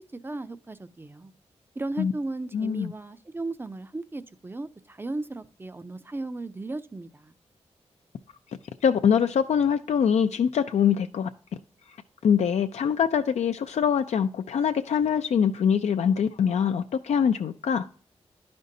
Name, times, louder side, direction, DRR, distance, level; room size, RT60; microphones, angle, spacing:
voice 1, 0.1-1.3 1.8-7.3, right 2 dB, 20° right, 0.4 m, -36 dB
voice 2, 2.5-2.9 8.8-11.3 12.2-17.9, left 7 dB, 75° left, 0.4 m, -23 dB
11.0 x 5.2 x 2.7 m
wide cardioid pair, 110°, 12 cm